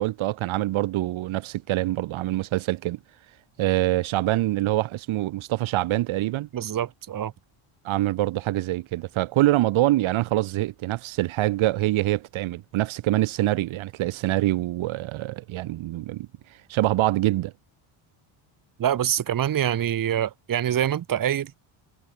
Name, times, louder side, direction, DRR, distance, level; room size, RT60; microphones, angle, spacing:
voice 1, 0.0-3.0 3.6-6.5 7.8-16.3 16.7-17.5, right 16 dB, 70° right, 3.8 m, -25 dB
voice 2, 6.5-7.3 18.8-21.5, right 10 dB, 40° right, 2.6 m, -25 dB
cardioid pair, 160°, 49 cm